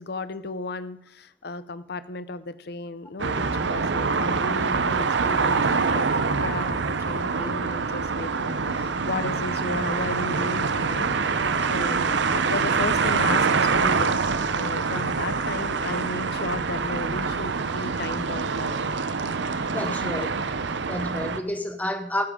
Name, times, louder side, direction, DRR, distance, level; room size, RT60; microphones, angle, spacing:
voice 1, 0.0-11.2 11.6-18.7 19.8-20.3, left 3 dB, 50° left, 14 dB, 0.6 m, -34 dB
sound 1, 3.2-21.4, right 4 dB, 60° right, 0.7 m, -25 dB
voice 2, 19.7-20.3 20.7-22.3, left 1 dB, 10° left, 7 dB, 1.0 m, -30 dB
15.0 x 13.5 x 3.7 m, 0.79 s
head